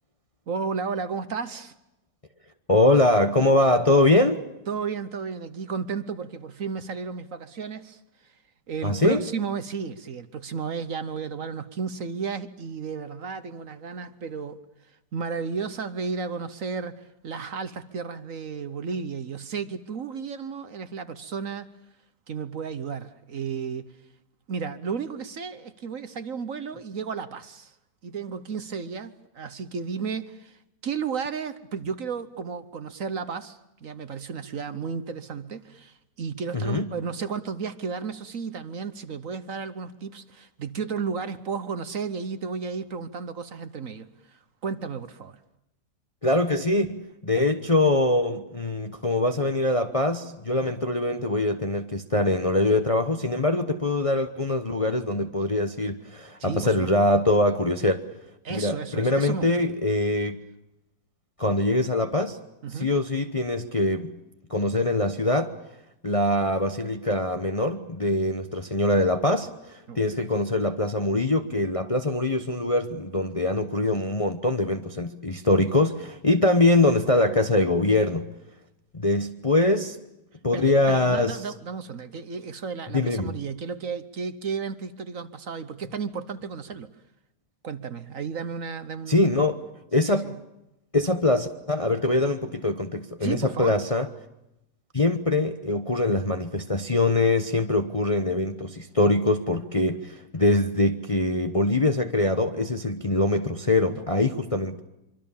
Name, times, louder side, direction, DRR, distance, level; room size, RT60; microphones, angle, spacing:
voice 1, 0.5-1.7 4.7-8.0 8.7-14.6 15.1-21.7 22.3-23.9 24.5-27.7 28.0-45.4 56.4-56.9 58.4-59.5 62.6-62.9 69.9-70.0 80.5-86.9 87.6-89.5 90.0-90.3 93.2-93.8, right 5 dB, 55° right, 1.4 m, -33 dB
voice 2, 2.7-4.5 8.8-9.2 36.5-36.8 46.2-58.0 58.5-60.4 61.4-62.4 62.7-64.2 64.5-65.6 66.0-78.3 78.9-80.0 80.4-81.4 82.9-83.3 89.1-89.7 89.9-90.3 90.9-94.1 94.9-104.8, left 2 dB, 25° left, 0.9 m, -23 dB
25.0 x 24.5 x 7.2 m
omnidirectional pair, 1.8 m